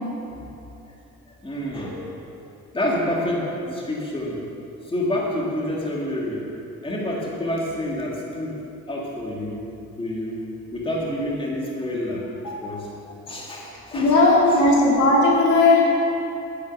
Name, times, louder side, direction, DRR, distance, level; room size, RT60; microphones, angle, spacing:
voice 1, 1.4-2.0 2.7-4.4 4.9-6.4 6.8-8.6 8.9-9.6 10.0-10.4 10.7-12.9 13.3-14.1 14.5-14.6, left 1 dB, 15° left, -3 dB, 2.2 m, -28 dB
voice 2, 13.9-15.9, left 2 dB, 75° left, -4 dB, 2.9 m, -17 dB
9.8 x 9.4 x 6.3 m, 2.8 s
cardioid pair, 90°, 30 cm